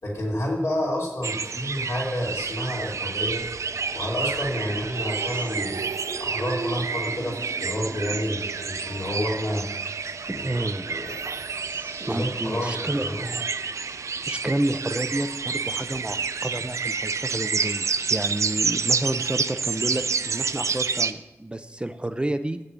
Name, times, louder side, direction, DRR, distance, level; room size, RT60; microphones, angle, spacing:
voice 1, 0.0-3.4 3.9-5.8 6.2-9.7 10.3-11.2 12.1-13.3, equal, 75° left, -3 dB, 3.1 m, -29 dB
sound 1, 1.2-21.1, right 5 dB, 85° right, 0.4 m, -29 dB
sound 2, 3.6-13.6, right 3 dB, 55° right, 1.8 m, -44 dB
voice 2, 10.3-10.9 12.0-13.0 14.3-22.6, right 1 dB, 20° right, 9 dB, 0.5 m, -30 dB
7.7 x 6.7 x 7.6 m, 0.94 s
wide cardioid pair, 80°, 5 cm